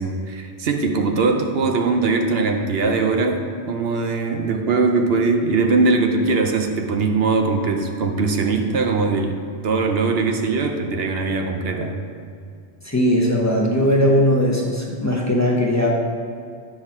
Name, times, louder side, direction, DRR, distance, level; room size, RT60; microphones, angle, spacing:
voice 1, 0.0-12.0, right 3 dB, 70° right, 4 dB, 0.9 m, -21 dB
voice 2, 12.8-15.9, equal, 15° left, -3 dB, 0.9 m, -19 dB
8.7 x 4.0 x 5.9 m, 2.3 s
omnidirectional pair, 1.1 m